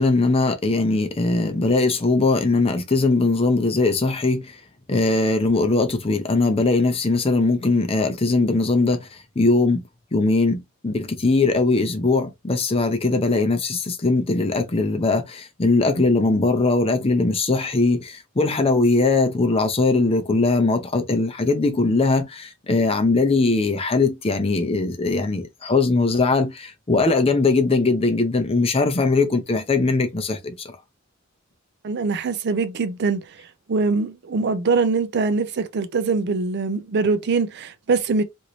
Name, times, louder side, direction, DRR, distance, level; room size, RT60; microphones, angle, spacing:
voice 1, 0.0-4.5 4.9-9.1 9.4-9.8 10.1-30.5, left 3 dB, 25° left, 0.6 m, -20 dB
voice 2, 31.8-33.2 33.7-38.2, right 4 dB, 50° right, 0.5 m, -23 dB
3.0 x 2.6 x 2.9 m
head